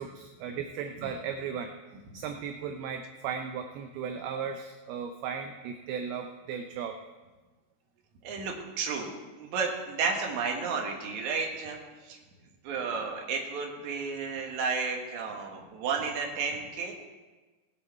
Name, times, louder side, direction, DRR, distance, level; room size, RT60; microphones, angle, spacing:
voice 1, 0.0-1.7 2.1-7.0, right 7 dB, 80° right, 5 dB, 2.4 m, -36 dB
voice 2, 8.2-9.1 9.4-11.8 12.0-12.2 12.6-16.9, right 5 dB, 55° right, 1 dB, 2.5 m, -32 dB
19.0 x 8.2 x 4.4 m, 1.2 s
omnidirectional pair, 4.8 m